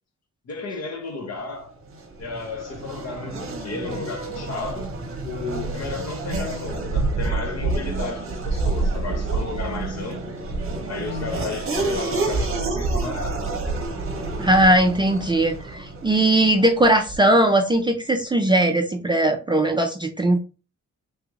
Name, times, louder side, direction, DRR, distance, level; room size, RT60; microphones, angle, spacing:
voice 1, 0.5-1.8 2.2-4.9 5.2-10.4 10.9-13.4, left 3 dB, 60° left, 0.9 m, -33 dB
Race car auto racing / Accelerating revving vroom, 1.8-17.4, right 3 dB, 45° right, 0.8 m, -28 dB
voice 2, 14.4-20.4, right 1 dB, 15° right, 0.3 m, -19 dB
3.4 x 2.4 x 3.0 m
wide cardioid pair, 155°, 29 cm